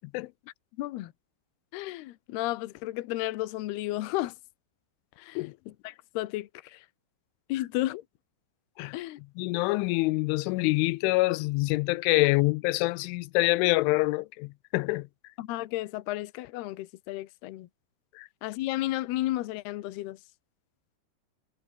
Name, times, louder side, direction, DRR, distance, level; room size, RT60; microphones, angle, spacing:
voice 1, 0.8-1.1 1.7-4.3 5.2-6.9 7.5-8.0 8.9-9.2 15.4-17.7 18.4-20.2, left 16 dB, 70° left, 2.8 m, -33 dB
voice 2, 9.4-15.1 18.2-18.3, left 22 dB, 85° left, 3.1 m, -26 dB
omnidirectional pair, 5.5 m